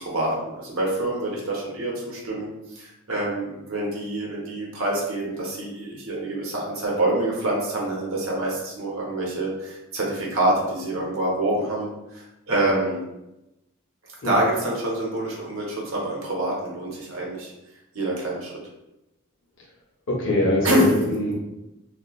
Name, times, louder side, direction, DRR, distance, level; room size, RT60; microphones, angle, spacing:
voice 1, 0.0-13.0 14.2-17.5 17.9-18.5 20.6-20.9, right 1 dB, 75° right, -3 dB, 0.8 m, -26 dB
voice 2, 20.1-21.4, left 1 dB, 60° left, -2 dB, 0.7 m, -23 dB
2.8 x 2.3 x 2.3 m, 0.94 s
head